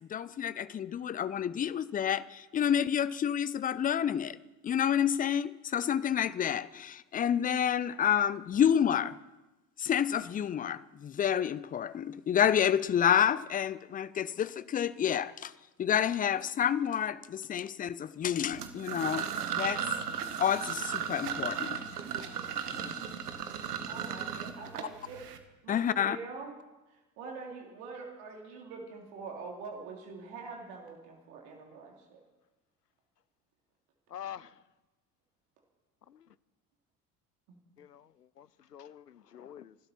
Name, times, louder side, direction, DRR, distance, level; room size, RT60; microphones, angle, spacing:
voice 1, 0.1-4.4 4.6-9.2 9.8-15.5 15.8-19.3 19.6-19.8 20.4-21.8 22.7-23.0 23.8-23.9 25.7-26.2, left 9 dB, 20° left, 0.5 m, -29 dB
sound 1, 18.5-25.4, right 8 dB, 75° right, 1.4 m, -36 dB
voice 2, 22.7-23.1 23.9-25.3 25.6-26.5 26.9-32.2 37.5-37.6, right 4 dB, 60° right, 3.0 m, -45 dB
voice 3, 34.1-34.6 36.1-36.4 37.8-39.8, left 10 dB, 90° left, 0.6 m, -47 dB
26.5 x 12.0 x 4.3 m
figure-of-eight pair, 60°, 46 cm